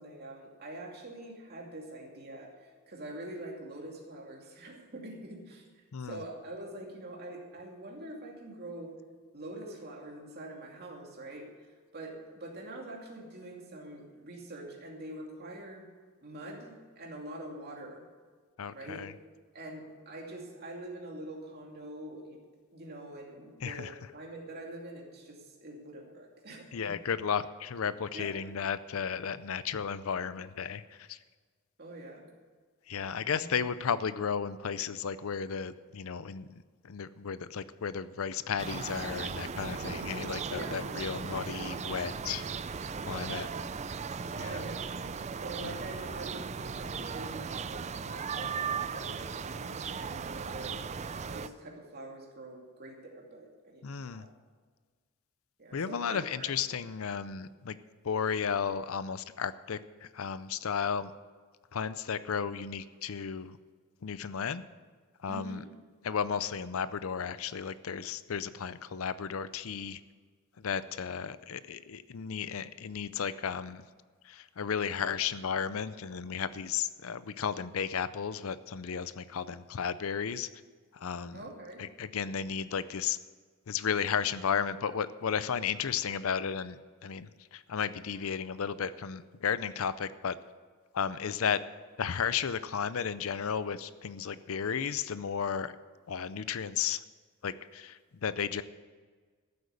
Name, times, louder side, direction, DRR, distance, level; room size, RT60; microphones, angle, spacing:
voice 1, 0.0-8.9 9.3-11.5 11.9-15.8 16.2-18.0 18.7-19.0 19.5-22.4 22.7-26.9 28.1-28.3 31.8-32.3 33.2-33.6 40.5-40.9 44.4-44.9 45.4-50.8 51.3-53.8 54.1-54.3 55.6-56.5 65.3-65.7 81.3-81.8, right 1 dB, 50° right, 0 dB, 2.6 m, -44 dB
voice 2, 18.6-19.1 23.6-23.9 26.7-30.8 31.1-31.2 32.9-36.5 36.8-42.4 43.1-43.5 44.4-44.6 45.6-45.7 53.8-54.2 55.7-57.8 58.0-59.8 60.1-61.1 61.7-63.6 64.0-64.6 65.2-65.6 66.0-70.0 70.6-73.8 74.3-80.5 81.0-81.4 81.8-83.2 83.7-90.4 90.9-91.6 92.0-95.7 96.1-97.0 97.4-98.6, left 7 dB, 70° left, 15 dB, 0.5 m, -34 dB
sound 1, 38.6-51.5, right 5 dB, 30° right, 0.4 m, -37 dB
14.0 x 8.0 x 6.8 m, 1.5 s
head